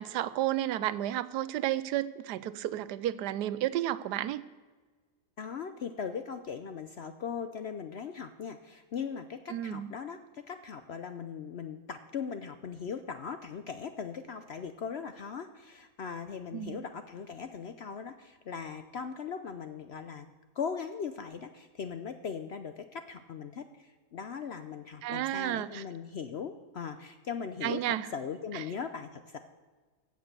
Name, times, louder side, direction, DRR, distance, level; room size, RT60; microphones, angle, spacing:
voice 1, 0.0-4.4 9.5-9.9 16.5-16.8 25.0-25.8 27.6-28.1 28.5-28.6, right 13 dB, 85° right, 16 dB, 1.2 m, -32 dB
voice 2, 5.4-20.3 20.5-29.4, left 6 dB, 60° left, 9 dB, 0.7 m, -39 dB
15.5 x 8.1 x 6.7 m, 1.4 s
omnidirectional pair, 1.7 m